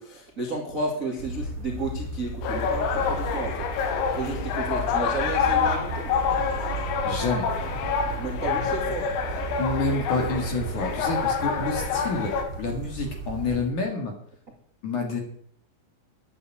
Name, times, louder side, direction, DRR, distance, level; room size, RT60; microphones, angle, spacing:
voice 1, 0.0-3.7 4.1-6.1 8.0-9.1, right 2 dB, 50° right, 0 dB, 0.9 m, -32 dB
sound 1, 1.2-13.6, right 4 dB, 30° right, 4.3 m, -34 dB
sound 2, 2.4-12.5, left 7 dB, 85° left, 4.3 m, -27 dB
voice 2, 7.0-7.5 9.6-12.3 12.6-14.1 14.8-15.2, left 3 dB, 50° left, 2 dB, 2.8 m, -28 dB
11.0 x 10.0 x 8.6 m, 0.63 s
omnidirectional pair, 5.9 m